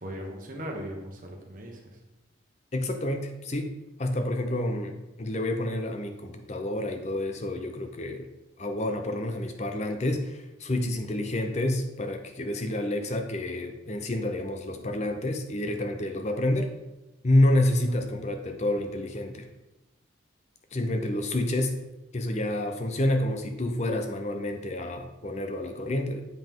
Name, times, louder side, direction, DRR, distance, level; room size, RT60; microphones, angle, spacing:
voice 1, 0.0-2.0 14.7-15.3 17.8-18.5, equal, 45° right, 1 dB, 1.2 m, -40 dB
voice 2, 2.7-3.7 4.0-8.3 8.6-16.7 17.2-19.5 20.7-21.8 22.1-26.2, left 1 dB, 35° left, 6 dB, 0.5 m, -28 dB
7.6 x 5.4 x 3.6 m, 0.98 s
head